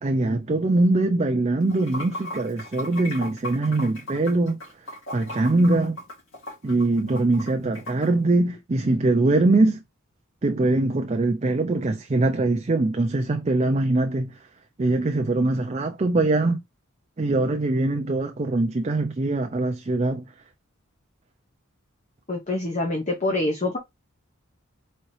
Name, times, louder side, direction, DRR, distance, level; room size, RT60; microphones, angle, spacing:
voice 1, 0.0-4.6 5.1-6.0 6.6-9.8 10.4-14.4 14.8-16.6 17.2-20.3, right 2 dB, 30° right, 0.4 m, -22 dB
Water / Sink (filling or washing), 1.6-8.1, left 1 dB, 70° left, 2.5 m, -37 dB
voice 2, 22.3-23.8, left 2 dB, 35° left, 0.9 m, -25 dB
4.3 x 3.6 x 3.2 m
head